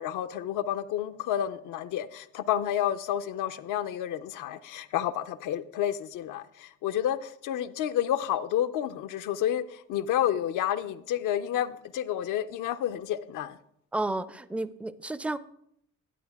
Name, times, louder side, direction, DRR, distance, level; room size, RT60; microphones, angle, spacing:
voice 1, 0.0-13.6, left 11 dB, 85° left, 0.6 m, -30 dB
voice 2, 13.9-15.4, right 2 dB, 5° right, 0.4 m, -31 dB
11.0 x 8.7 x 3.5 m
cardioid pair, 90°, 30 cm